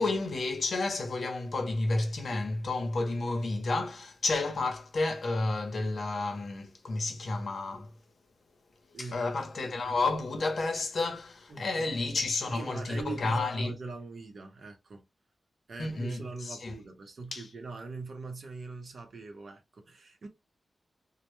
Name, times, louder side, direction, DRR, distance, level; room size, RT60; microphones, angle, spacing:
voice 1, 0.0-7.9 9.0-13.8 15.8-16.8 17.3-17.5, left 3 dB, 60° left, 0.7 m, -31 dB
voice 2, 11.5-11.9 12.5-15.0 15.7-20.3, right 3 dB, 60° right, 0.6 m, -42 dB
2.1 x 2.0 x 3.0 m
wide cardioid pair, 120°, 0 cm